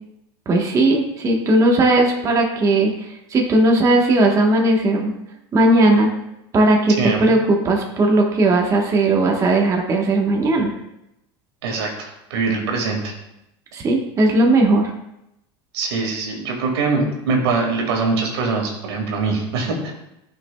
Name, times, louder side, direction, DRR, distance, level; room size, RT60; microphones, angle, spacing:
voice 1, 0.5-5.1 5.5-6.1 6.5-10.7 13.7-14.9, right 2 dB, 25° right, 0 dB, 1.1 m, -17 dB
voice 2, 7.0-7.3 11.6-13.1 15.7-19.9, right 4 dB, 85° right, 1 dB, 1.9 m, -23 dB
12.0 x 5.4 x 2.3 m, 0.85 s
supercardioid pair, 140°, 13 cm